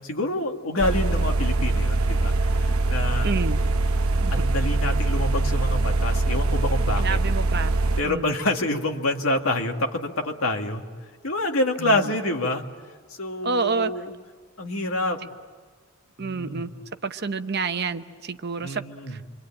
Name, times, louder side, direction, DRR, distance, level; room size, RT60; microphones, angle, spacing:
voice 1, 0.0-2.3 2.6-3.3 4.3-7.2 8.0-10.8 11.2-12.6 13.1-14.1 14.6-15.2 16.2-16.7 18.6-19.2, left 1 dB, 75° left, 3 dB, 2.2 m, -27 dB
sound 1, 0.8-8.0, right 2 dB, 90° right, 0.9 m, -23 dB
voice 2, 3.2-3.6 4.2-4.3 7.0-7.7 8.0-8.3 11.8-12.1 13.4-13.9 16.2-16.7 17.0-19.3, right 4 dB, 50° right, 9 dB, 0.9 m, -29 dB
28.0 x 24.0 x 8.8 m, 1.5 s
head